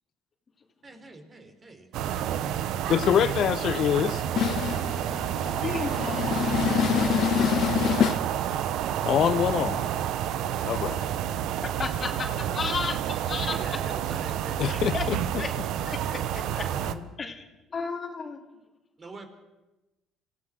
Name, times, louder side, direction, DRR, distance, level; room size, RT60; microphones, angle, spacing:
voice 1, 0.8-2.6 13.4-14.9 16.5-17.1 19.0-19.3, right 2 dB, 35° right, 4.0 m, -45 dB
sound 1, 1.9-16.9, right 10 dB, 70° right, 1.0 m, -29 dB
voice 2, 2.9-8.3 9.0-10.0 10.6-11.1 14.6-15.2, left 10 dB, 60° left, 0.6 m, -26 dB
voice 3, 5.6-6.5 11.6-13.6 14.7-15.0 15.4-15.5 15.8-16.4 17.2-17.4 17.7-18.4, left 4 dB, 35° left, 2.6 m, -33 dB
25.5 x 16.5 x 6.5 m
supercardioid pair, 80°, 0 cm